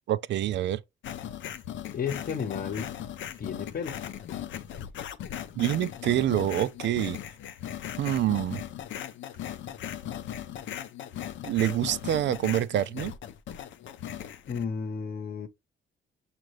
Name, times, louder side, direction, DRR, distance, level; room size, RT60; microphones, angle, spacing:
voice 1, 0.1-0.8 5.6-7.2 8.0-8.6 11.4-13.1, right 12 dB, 65° right, 0.4 m, -26 dB
sound 1, 1.0-14.6, left 10 dB, 70° left, 0.6 m, -38 dB
voice 2, 1.9-2.9 3.4-4.0 14.5-15.5, left 6 dB, 50° left, 0.9 m, -33 dB
6.4 x 2.5 x 3.1 m
cardioid pair, 90°, 20 cm